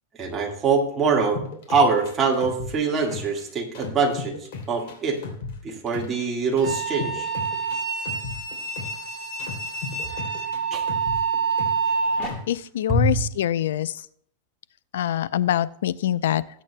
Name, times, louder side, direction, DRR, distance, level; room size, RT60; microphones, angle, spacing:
voice 1, 0.2-1.4 1.7-4.3 4.7-5.2 5.6-7.3 10.7-10.8 12.9-13.2, right 4 dB, 20° right, 0 dB, 1.7 m, -23 dB
sound 1, 1.3-3.4 3.7-6.2 6.6-9.1 9.4-11.9 12.2-12.6, left 4 dB, 65° left, 2.9 m, -36 dB
sound 2, 6.6-12.3, right 5 dB, 5° left, 2.3 m, -27 dB
voice 2, 12.5-13.9 14.9-16.4, left 11 dB, 80° left, 18 dB, 0.4 m, -24 dB
20.0 x 8.3 x 2.2 m, 0.64 s
supercardioid pair, 155°, 0 cm